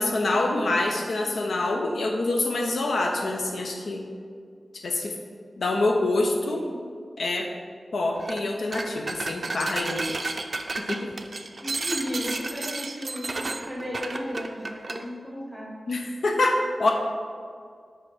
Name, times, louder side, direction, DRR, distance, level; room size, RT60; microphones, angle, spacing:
voice 1, 0.0-4.0 4.8-5.2 5.6-6.6 7.2-7.5 7.9-10.2 10.8-11.1 15.9-16.9, left 2 dB, 80° left, 2 dB, 0.5 m, -26 dB
sound 1, 8.2-8.4 8.7-15.0, right 3 dB, 40° right, 0.4 m, -32 dB
voice 2, 11.6-15.7, equal, 10° left, -4 dB, 1.4 m, -34 dB
5.5 x 4.8 x 4.2 m, 2.1 s
wide cardioid pair, 135°, 0 cm